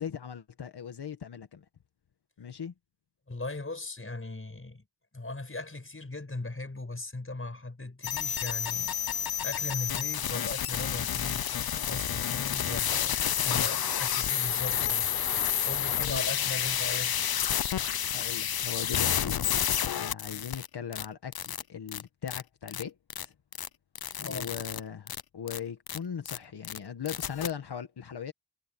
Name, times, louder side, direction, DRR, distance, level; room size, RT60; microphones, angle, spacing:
voice 1, 0.0-1.7 2.4-2.7 15.9-16.5 18.1-19.4 19.9-23.0 23.2-23.3 24.2-28.3, left 7 dB, 85° left, 1.7 m, -39 dB
voice 2, 3.3-4.8 5.1-13.2 13.4-17.2 24.2-24.5, left 2 dB, 35° left, 5.8 m, -39 dB
sound 1, 8.0-20.7 20.9-21.0 21.3-21.6 21.9-22.0 22.3-22.4 22.7-22.8 23.1-23.2 23.5-23.7 23.9-24.8 25.1-25.2 25.5-25.6 25.9-26.0 26.2-26.4 26.6-26.8 27.1-27.5, left 9 dB, 70° left, 0.7 m, -30 dB
cardioid pair, 55°, 39 cm